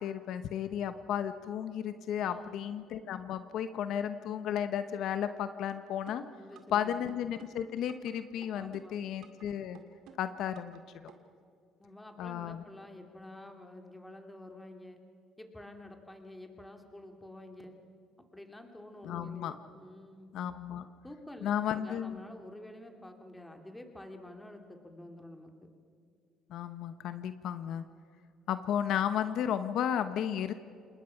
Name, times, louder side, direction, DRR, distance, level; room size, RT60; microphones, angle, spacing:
voice 1, 0.0-6.2 6.7-9.8 10.2-10.8 12.2-12.6 19.0-19.5 20.3-20.9 21.4-22.2 26.5-27.8 28.5-30.5, left 9 dB, 70° left, 10 dB, 0.9 m, -33 dB
voice 2, 2.2-2.6 6.4-7.0 8.5-9.0 11.8-15.0 15.4-17.8 18.2-20.3 21.0-25.5, left 1 dB, 10° left, 4 dB, 2.7 m, -49 dB
sound 1, 6.1-6.8 7.1-8.1 8.4-9.4 9.7-10.8 11.1-11.2, right 8 dB, 75° right, 2.3 m, -54 dB
27.0 x 20.0 x 5.8 m, 2.4 s
cardioid pair, 95°, 0 cm